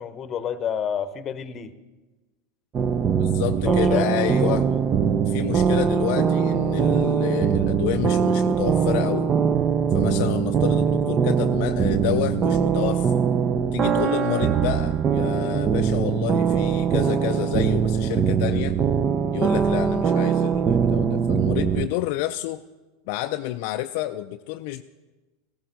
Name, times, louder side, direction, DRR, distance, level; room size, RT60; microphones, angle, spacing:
voice 1, 0.0-1.7 3.6-4.1 4.4-4.8, left 8 dB, 35° left, 13 dB, 0.8 m, -29 dB
sound 1, 2.7-21.9, right 7 dB, 30° right, 0.6 m, -22 dB
voice 2, 3.1-4.6 5.3-9.3 9.9-13.1 13.7-18.8 19.3-22.6 23.1-24.8, left 15 dB, 60° left, 7 dB, 0.4 m, -29 dB
15.5 x 13.5 x 3.9 m, 1.2 s
hypercardioid pair, 100°, 0 cm